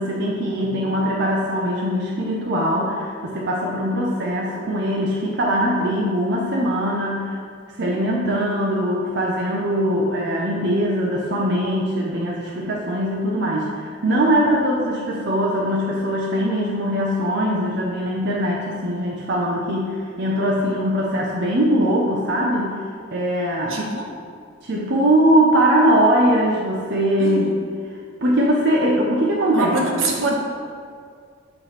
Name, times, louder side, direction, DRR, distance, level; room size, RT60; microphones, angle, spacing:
voice 1, 0.0-7.4 7.8-22.7 23.1-23.8 24.6-27.5 28.2-29.8, equal, 55° right, -3 dB, 0.8 m, -21 dB
voice 2, 0.6-0.9 23.7-24.1 27.2-27.6 29.5-30.3, right 2 dB, 85° right, -1 dB, 1.3 m, -25 dB
8.8 x 3.3 x 5.8 m, 2.2 s
head